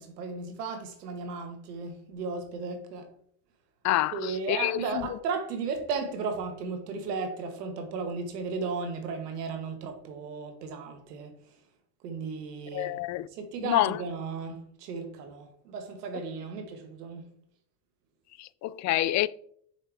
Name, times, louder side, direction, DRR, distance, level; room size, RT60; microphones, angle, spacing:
voice 1, 0.0-3.1 4.1-11.3 12.0-13.0 13.3-17.3, right 4 dB, 90° right, 1.5 m, -35 dB
voice 2, 3.8-5.0 12.7-13.3 13.6-14.0 18.4-19.3, left 15 dB, 40° left, 0.4 m, -27 dB
6.9 x 5.6 x 3.4 m
supercardioid pair, 80°, 46 cm